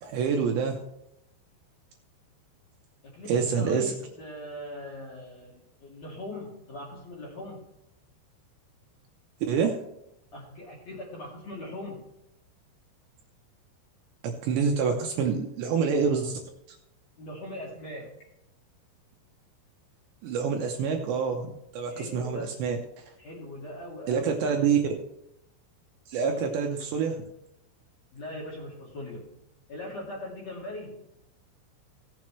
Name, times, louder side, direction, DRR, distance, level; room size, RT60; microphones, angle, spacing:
voice 1, 0.0-0.8 3.3-3.9 9.5-9.8 14.2-16.4 20.2-22.8 24.1-24.8 26.1-27.2, right 6 dB, 75° right, 2 dB, 2.8 m, -27 dB
voice 2, 3.0-7.7 10.3-12.1 17.2-18.1 21.9-22.6 23.2-24.6 26.2-26.6 28.1-29.4 29.7-31.0, left 1 dB, 45° left, -4 dB, 2.6 m, -40 dB
17.0 x 7.6 x 3.2 m, 0.86 s
omnidirectional pair, 5.8 m